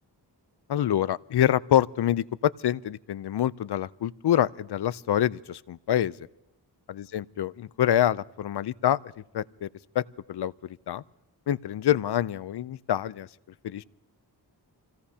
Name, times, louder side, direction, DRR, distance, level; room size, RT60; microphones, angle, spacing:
voice 1, 0.7-6.1 6.9-9.0 9.3-9.7 9.9-11.0 11.5-13.3 13.6-13.8, left 11 dB, 70° left, 19 dB, 0.6 m, -26 dB
27.5 x 17.0 x 2.8 m, 0.91 s
wide cardioid pair, 70°, 41 cm